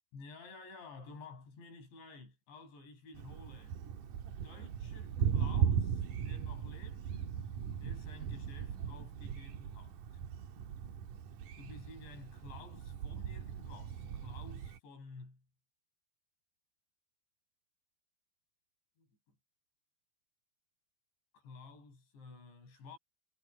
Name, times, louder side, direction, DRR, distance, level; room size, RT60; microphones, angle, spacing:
voice 1, 0.1-3.8 4.4-7.0 7.8-10.0 11.6-15.4 19.0-19.1 21.3-23.0, left 4 dB, 75° left, 10.0 m, -53 dB
Thunder, 3.1-14.8, right 8 dB, 65° right, 2.3 m, -38 dB
omnidirectional pair, 5.1 m